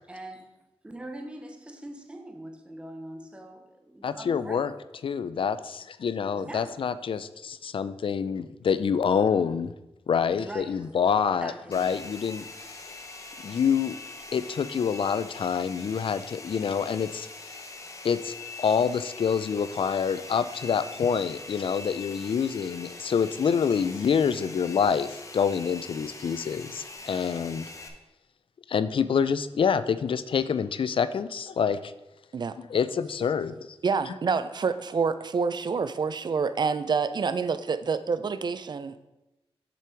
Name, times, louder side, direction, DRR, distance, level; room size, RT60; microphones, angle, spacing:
voice 1, 0.1-4.7 6.3-7.2 8.7-8.8 10.4-11.2 11.4-12.0, right 1 dB, 10° right, 4 dB, 0.8 m, -43 dB
voice 2, 4.0-4.7 5.0-9.7 10.1-12.4 13.4-14.0 14.3-17.3 18.0-27.6 28.7-31.9 32.7-33.6, left 6 dB, 55° left, 14 dB, 0.4 m, -26 dB
Domestic sounds home sounds, 11.7-27.9, left 3 dB, 30° left, 0.9 m, -43 dB
voice 3, 33.8-39.1, right 5 dB, 45° right, 12 dB, 0.4 m, -27 dB
7.0 x 5.9 x 4.6 m, 0.97 s
wide cardioid pair, 130°, 10 cm